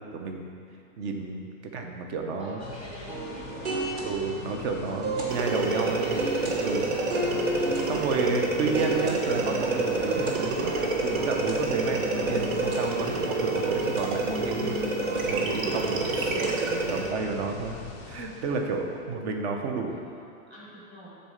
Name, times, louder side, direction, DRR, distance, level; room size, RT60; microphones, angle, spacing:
voice 1, 0.1-0.5 1.0-1.5 1.7-2.6 4.0-6.2 6.6-7.4 7.9-10.7 11.0-14.8 15.3-16.4 16.9-17.8 18.0-20.0, right 4 dB, 55° right, 3 dB, 0.9 m, -31 dB
voice 2, 2.4-4.1 5.4-6.2 19.0-19.3 19.9-21.1, equal, 15° right, -7 dB, 1.3 m, -44 dB
sound 1, 2.6-19.0, left 5 dB, 15° left, 0.4 m, -43 dB
sound 2, 3.1-16.6, right 2 dB, 30° right, 1.0 m, -35 dB
sound 3, 5.3-17.1, right 3 dB, 85° right, 1.1 m, -28 dB
6.9 x 4.1 x 6.5 m, 2.4 s
supercardioid pair, 170°, 38 cm